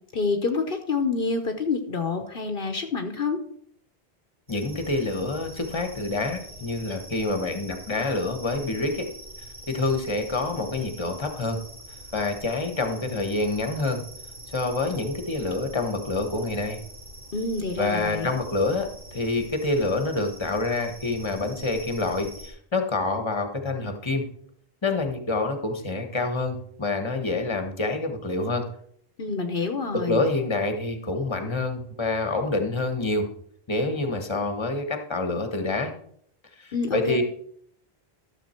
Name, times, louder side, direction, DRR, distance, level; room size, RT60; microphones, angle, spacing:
voice 1, 0.1-3.4 17.3-18.4 29.2-30.2 36.7-37.2, left 4 dB, 60° left, 6 dB, 1.1 m, -27 dB
voice 2, 4.5-9.1 9.7-11.6 12.1-14.0 14.5-16.8 17.8-24.3 24.8-28.6 29.9-33.3 33.7-35.9 36.6-37.2, left 2 dB, 25° left, 6 dB, 1.3 m, -27 dB
sound 1, 4.5-22.5, right 1 dB, 65° right, 3.2 m, -44 dB
12.5 x 6.9 x 4.4 m, 0.65 s
omnidirectional pair, 1.1 m